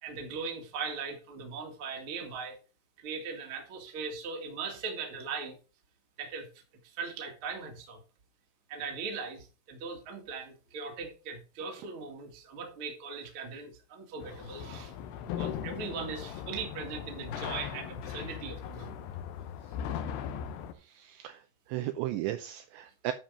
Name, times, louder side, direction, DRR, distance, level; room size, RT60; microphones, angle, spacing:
voice 1, 0.0-2.6 3.0-5.6 6.2-6.5 6.8-8.0 8.7-14.9 15.3-19.0, right 5 dB, 45° right, 1.8 m, -39 dB
sound 1, 14.2-20.7, left 8 dB, 75° left, 2.5 m, -38 dB
voice 2, 20.9-21.4 21.7-23.1, right 14 dB, 80° right, 2.6 m, -35 dB
10.0 x 5.5 x 5.0 m
omnidirectional pair, 5.6 m